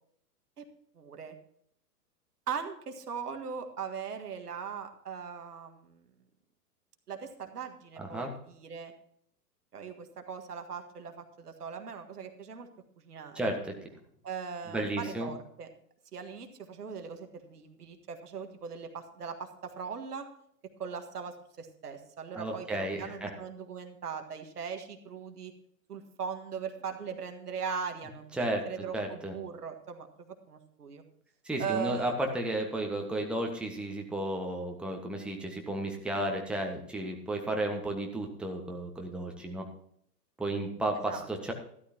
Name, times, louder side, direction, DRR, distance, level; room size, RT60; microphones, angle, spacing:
voice 1, 1.0-1.3 2.5-6.0 7.1-8.9 9.7-12.7 13.0-13.5 14.2-15.7 16.1-20.3 20.8-25.5 25.9-31.0 31.6-32.2 41.1-41.3, right 6 dB, 75° right, 5 dB, 1.7 m, -39 dB
voice 2, 8.0-8.3 13.3-13.7 14.7-15.3 22.3-23.3 28.3-28.6 28.9-29.3 31.4-39.6 40.4-41.5, right 1 dB, ahead, 1 dB, 1.4 m, -33 dB
13.5 x 12.5 x 2.9 m, 0.68 s
figure-of-eight pair, 110°, 47 cm